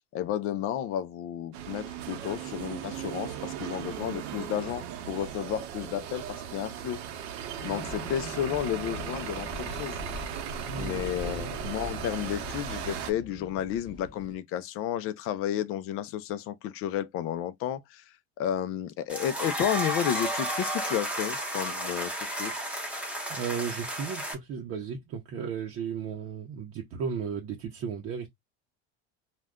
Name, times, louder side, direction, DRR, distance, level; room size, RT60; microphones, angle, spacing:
voice 1, 0.1-7.0 7.6-10.0 10.7-22.6, left 10 dB, 45° left, 0.5 m, -32 dB
sound 1, 1.5-13.1, right 9 dB, 80° right, 0.8 m, -37 dB
sound 2, 7.6-14.4, left 2 dB, 25° left, 1.0 m, -42 dB
voice 2, 10.7-11.7 23.3-28.3, right 7 dB, 45° right, 0.7 m, -35 dB
sound 3, 19.1-24.3, right 1 dB, 5° right, 0.8 m, -32 dB
2.4 x 2.2 x 3.5 m
cardioid pair, 140°, 32 cm